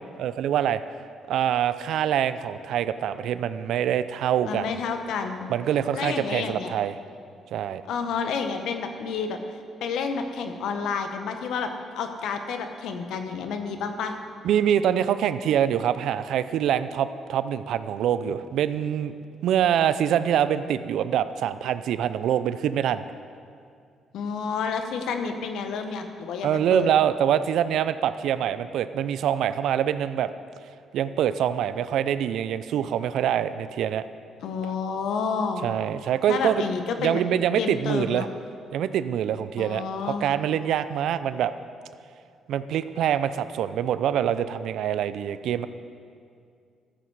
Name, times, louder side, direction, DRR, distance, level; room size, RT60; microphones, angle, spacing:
voice 1, 0.2-0.8 1.3-4.7 5.5-7.0 7.5-7.8 14.4-19.1 19.4-23.0 26.4-30.3 30.9-34.0 35.6-36.6 37.0-38.3 38.7-41.5 42.5-45.7, right 9 dB, 80° right, 13 dB, 0.4 m, -25 dB
voice 2, 4.4-5.5 5.9-6.7 7.9-11.7 11.9-14.2 24.1-26.9 34.4-35.7 36.3-37.2 37.6-38.3 39.6-40.2, left 5 dB, 80° left, 6 dB, 0.9 m, -30 dB
13.5 x 8.0 x 4.7 m, 2.3 s
cardioid pair, 90°, 0 cm